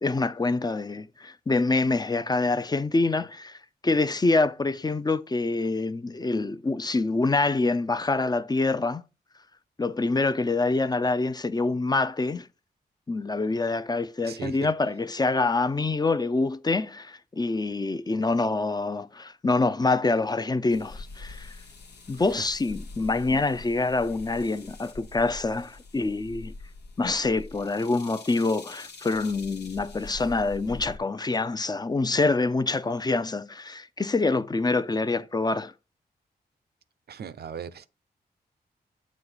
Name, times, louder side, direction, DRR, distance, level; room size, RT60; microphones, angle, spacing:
voice 1, 0.0-9.0 9.8-12.5 13.1-21.6 22.1-26.5 27.0-35.7, left 3 dB, 25° left, 0.6 m, -26 dB
voice 2, 14.2-14.6 22.1-22.3 37.1-37.9, right 8 dB, 70° right, 0.6 m, -38 dB
sound 1, 20.7-31.0, left 3 dB, 80° left, 1.0 m, -44 dB
7.5 x 3.0 x 5.6 m
cardioid pair, 60°, 17 cm